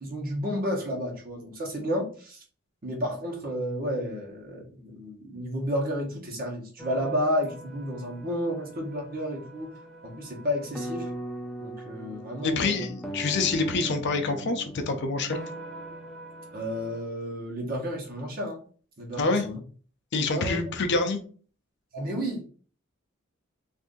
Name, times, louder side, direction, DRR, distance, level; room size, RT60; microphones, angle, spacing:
voice 1, 0.0-2.4 2.8-9.7 10.0-11.1 11.6-12.9 16.5-18.6 19.0-19.6 20.3-20.6 21.9-22.4, equal, 45° right, 0 dB, 1.1 m, -31 dB
sound 1, 6.8-17.0, right 1 dB, ahead, 0.5 m, -40 dB
voice 2, 12.4-15.4 19.2-19.5 20.1-21.2, left 3 dB, 55° left, 6 dB, 0.6 m, -26 dB
2.6 x 2.6 x 3.7 m, 0.42 s
head